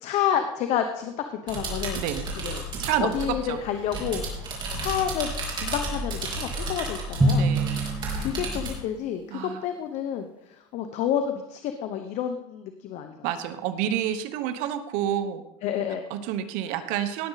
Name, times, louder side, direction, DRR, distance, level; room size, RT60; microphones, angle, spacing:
voice 1, 0.0-2.0 2.4-2.6 3.0-4.3 4.7-5.3 5.6-7.5 8.2-13.1 15.6-16.0, left 9 dB, 50° left, 7 dB, 1.0 m, -29 dB
sound 1, 1.5-8.8, right 2 dB, 30° right, 4.0 m, -33 dB
voice 2, 1.9-2.2 2.8-3.6 7.3-7.8 9.3-9.6 13.2-15.4 16.1-17.3, right 10 dB, 60° right, 10 dB, 1.1 m, -29 dB
Drum, 7.2-8.9, right 1 dB, 10° right, 1.8 m, -25 dB
18.0 x 7.8 x 4.1 m, 0.87 s
supercardioid pair, 130°, 15 cm